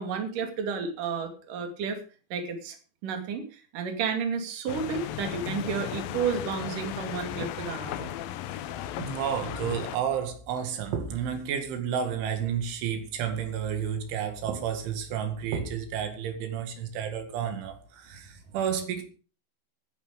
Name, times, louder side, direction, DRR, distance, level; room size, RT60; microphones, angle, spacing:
voice 1, 0.0-2.0 2.3-2.8 3.0-8.1, right 6 dB, 50° right, 3.9 m, -31 dB
sound 1, 4.7-10.0, left 12 dB, 85° left, 2.0 m, -36 dB
voice 2, 9.0-19.0, right 8 dB, 85° right, 4.4 m, -31 dB
16.5 x 10.0 x 4.9 m
omnidirectional pair, 5.4 m